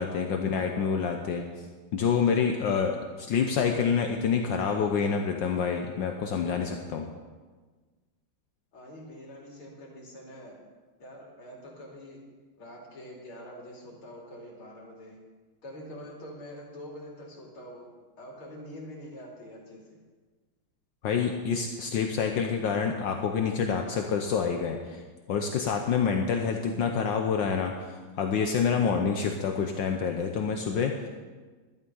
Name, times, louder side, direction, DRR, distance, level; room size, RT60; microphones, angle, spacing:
voice 1, 0.0-1.4 1.9-7.1 21.0-31.1, left 6 dB, 70° left, 4 dB, 1.5 m, -27 dB
voice 2, 8.7-10.6 11.0-12.2 12.6-15.2 15.6-17.9 18.2-19.8, equal, 85° left, -2 dB, 3.5 m, -45 dB
12.0 x 11.5 x 5.5 m, 1.4 s
omnidirectional pair, 2.3 m